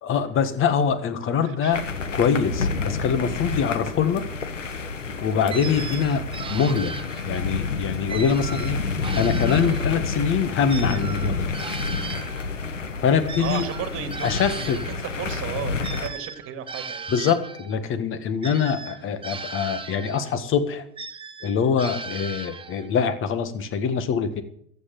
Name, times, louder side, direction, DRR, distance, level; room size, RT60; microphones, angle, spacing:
voice 1, 0.0-1.8 2.2-4.2 5.2-6.2 6.5-6.9 7.2-8.8 9.1-11.5 13.0-13.7 14.2-14.8 17.1-20.8 21.4-24.4, left 7 dB, 35° left, 11 dB, 1.7 m, -24 dB
voice 2, 1.4-1.7 13.4-14.3 14.5-17.1, right 9 dB, 35° right, 8 dB, 2.3 m, -34 dB
sound 1, 1.7-16.1, left 4 dB, 90° left, 1.3 m, -29 dB
sound 2, 5.5-7.5 8.1-10.2 10.7-15.0 15.8-17.8 18.4-20.4 21.0-22.9, right 4 dB, 15° right, 1.0 m, -37 dB
14.5 x 8.3 x 7.7 m, 0.66 s
hypercardioid pair, 95°, 36 cm